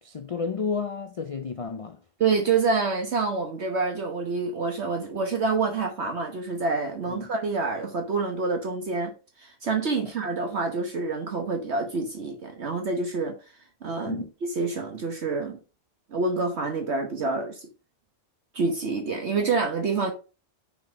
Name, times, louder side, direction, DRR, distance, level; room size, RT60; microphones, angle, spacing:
voice 1, 0.0-2.0 7.1-7.3 10.0-10.1 14.1-14.3, left 5 dB, 65° left, 0.3 m, -31 dB
voice 2, 2.2-13.4 13.8-15.6 16.1-17.7 18.5-20.1, right 4 dB, 60° right, 1.3 m, -27 dB
5.7 x 5.2 x 5.3 m
omnidirectional pair, 1.3 m